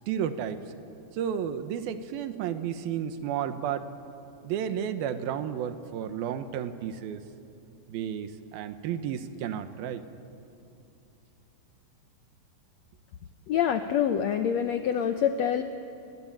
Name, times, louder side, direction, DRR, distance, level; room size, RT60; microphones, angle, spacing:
voice 1, 0.1-0.6 1.1-3.9 4.4-7.2 7.9-10.0, right 9 dB, 85° right, 10 dB, 2.9 m, -32 dB
voice 2, 13.5-15.6, left 8 dB, 80° left, 8 dB, 1.5 m, -26 dB
29.5 x 21.0 x 8.9 m, 2.7 s
omnidirectional pair, 4.2 m